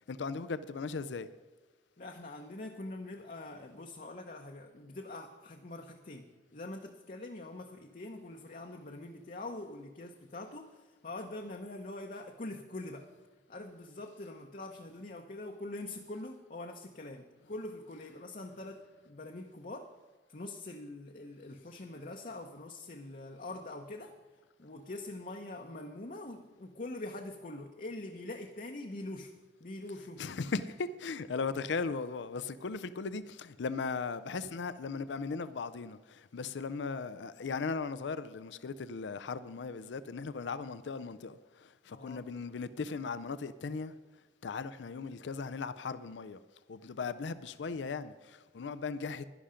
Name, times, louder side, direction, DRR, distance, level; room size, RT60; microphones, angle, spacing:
voice 1, 0.1-1.3 30.2-43.9 44.4-46.4 46.7-49.2, left 4 dB, 80° left, 0.5 m, -37 dB
voice 2, 2.0-6.2 6.5-13.1 13.5-19.9 20.3-24.1 24.6-29.3 29.6-30.2 41.9-42.2, left 2 dB, 45° left, 0.8 m, -44 dB
11.5 x 11.0 x 5.0 m
head